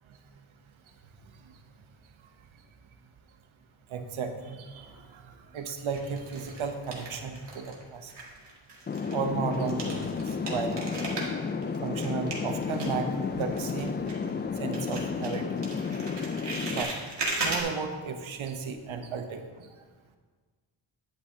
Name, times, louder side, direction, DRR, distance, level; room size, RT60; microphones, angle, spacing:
voice 1, 3.9-4.9 5.1-5.2 5.5-8.1 9.1-10.1 10.5-10.9 11.8-13.1 13.3-13.9 14.6-15.6 16.7-17.0 17.4-19.7, right 5 dB, 85° right, 6 dB, 0.9 m, -34 dB
sound 1, 4.7-5.4 5.9-7.8 8.1-14.5 14.7-17.6, right 2 dB, 60° right, 2.0 m, -37 dB
sound 2, 8.9-16.8, left 5 dB, 25° left, 0.3 m, -32 dB
10.0 x 8.4 x 2.8 m, 1.5 s
cardioid pair, 75°, 47 cm